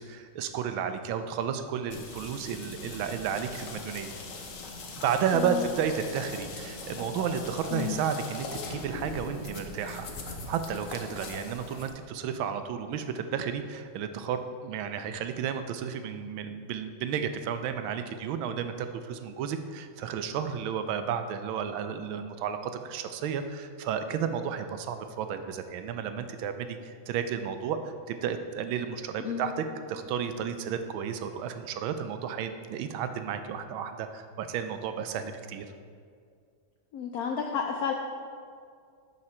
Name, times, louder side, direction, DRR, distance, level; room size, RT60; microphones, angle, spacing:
voice 1, 0.1-4.1 5.0-35.7, right 7 dB, 90° right, 9 dB, 1.4 m, -32 dB
sound 1, 1.9-11.9, left 3 dB, 55° left, 1.0 m, -41 dB
voice 2, 36.9-37.9, left 7 dB, 85° left, 2 dB, 0.8 m, -31 dB
11.0 x 4.9 x 4.3 m, 2.2 s
omnidirectional pair, 2.2 m